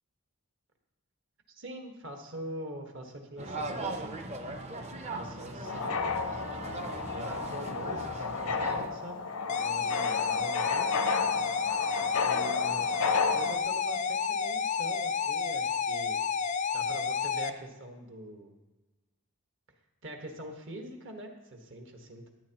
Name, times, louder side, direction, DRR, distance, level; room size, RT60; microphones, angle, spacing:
voice 1, 1.5-4.2 5.1-9.2 9.5-10.9 12.1-12.9 13.3-16.2 16.7-18.6 20.0-22.3, right 1 dB, 55° right, 3 dB, 1.4 m, -43 dB
sound 1, 3.4-8.9, right 2 dB, 30° right, 0.6 m, -39 dB
sound 2, 5.6-13.6, left 4 dB, 80° left, 0.6 m, -32 dB
sound 3, 9.5-17.5, left 6 dB, 30° left, 0.3 m, -30 dB
13.5 x 9.2 x 2.9 m, 1.1 s
head